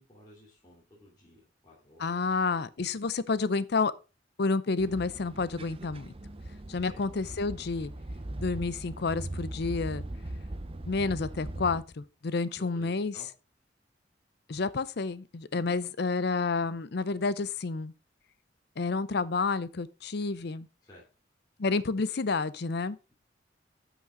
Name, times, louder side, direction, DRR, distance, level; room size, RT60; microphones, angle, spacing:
voice 1, 0.0-2.3 6.7-7.0 12.5-13.3 20.8-21.0, left 1 dB, 20° left, 2.9 m, -54 dB
voice 2, 2.0-3.9 4.4-6.1 6.7-7.9 8.4-10.0 10.9-13.1 14.5-17.9 18.8-20.7 21.6-23.0, left 4 dB, 60° left, 0.6 m, -30 dB
sound 1, 4.8-11.8, right 1 dB, 30° right, 0.7 m, -40 dB
10.5 x 6.1 x 3.8 m
head